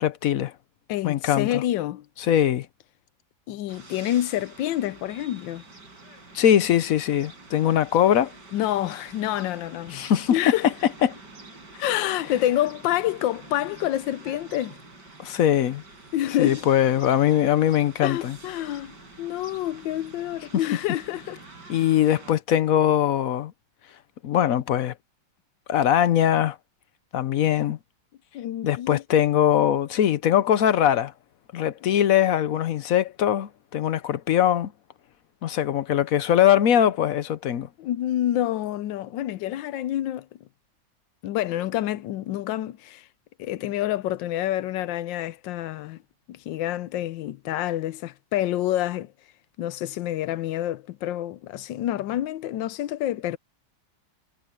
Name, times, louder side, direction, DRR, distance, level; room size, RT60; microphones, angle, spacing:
voice 1, 0.0-0.5 1.0-1.6 2.2-2.7 6.3-8.3 9.9-10.5 11.0-11.2 15.2-15.8 16.4-18.4 21.7-23.5 24.2-24.9 25.7-26.6 27.1-27.8 28.6-31.1 31.5-34.7 35.4-37.7, left 10 dB, 60° left, 1.0 m, -21 dB
voice 2, 0.9-2.1 3.5-5.6 8.5-10.7 11.7-14.8 16.1-16.7 18.0-21.4 28.3-29.0 37.8-40.3 41.2-43.1 43.4-46.0 46.3-49.1 49.6-53.4, left 13 dB, 85° left, 1.4 m, -28 dB
sound 1, 3.7-22.3, right 3 dB, 70° right, 5.2 m, -47 dB
omnidirectional pair, 1.9 m